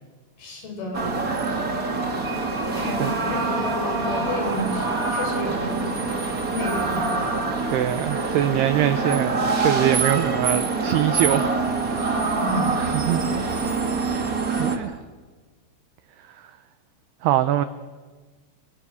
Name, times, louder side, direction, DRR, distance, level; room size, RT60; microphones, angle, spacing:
voice 1, 0.4-1.2 2.8-4.8 5.1-5.9 6.5-7.2 12.2-13.4, left 1 dB, 50° left, 2 dB, 7.1 m, -30 dB
sound 1, 0.9-14.8, right 3 dB, 55° right, 0.9 m, -25 dB
voice 2, 7.7-11.6 12.0-12.2 12.8-13.2 14.1-14.3 14.6-14.9 16.4-16.5 17.2-17.6, right 12 dB, 85° right, 12 dB, 2.3 m, -23 dB
30.0 x 18.5 x 6.4 m, 1.4 s
omnidirectional pair, 5.7 m